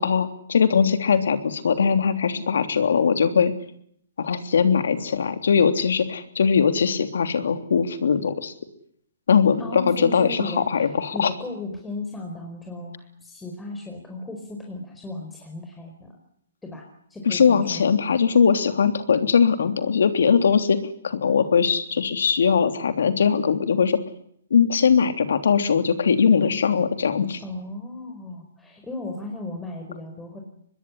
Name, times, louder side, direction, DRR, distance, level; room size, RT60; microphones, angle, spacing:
voice 1, 0.0-3.5 4.2-8.5 9.3-11.3 17.2-20.8 21.0-24.0 24.5-27.4, left 6 dB, 75° left, 8 dB, 3.2 m, -20 dB
voice 2, 9.6-16.1 16.6-16.8 17.1-17.9 27.4-30.4, left 2 dB, 10° left, 1 dB, 4.9 m, -35 dB
24.5 x 21.0 x 10.0 m, 0.69 s
hypercardioid pair, 140°, 0 cm